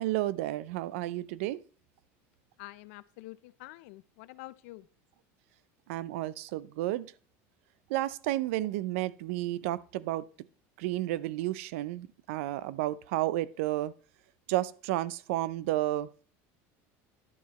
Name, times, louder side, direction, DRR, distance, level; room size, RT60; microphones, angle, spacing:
voice 1, 0.0-1.6 5.9-7.1 7.9-10.3 10.8-13.9 14.5-16.1, right 15 dB, 85° right, 0.5 m, -31 dB
voice 2, 2.6-4.9, left 19 dB, 75° left, 0.5 m, -47 dB
11.0 x 7.2 x 2.9 m
cardioid pair, 165°, 7 cm